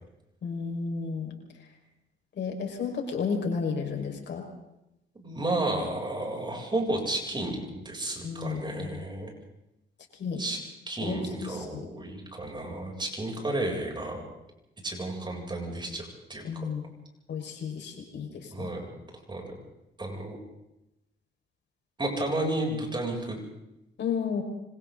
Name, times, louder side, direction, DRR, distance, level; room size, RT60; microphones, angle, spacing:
voice 1, 0.4-1.3 2.4-4.5 8.2-9.1 10.2-10.4 11.0-11.9 16.4-16.9 17.3-18.7 24.0-24.4, left 5 dB, 60° left, 2 dB, 5.7 m, -32 dB
voice 2, 5.1-9.3 10.4-10.6 10.9-14.2 14.8-16.7 18.5-18.9 19.3-19.5 20.0-20.4 22.0-23.4, right 1 dB, 25° right, 0 dB, 7.9 m, -32 dB
26.5 x 26.5 x 4.1 m, 0.88 s
cardioid pair, 90°, 20 cm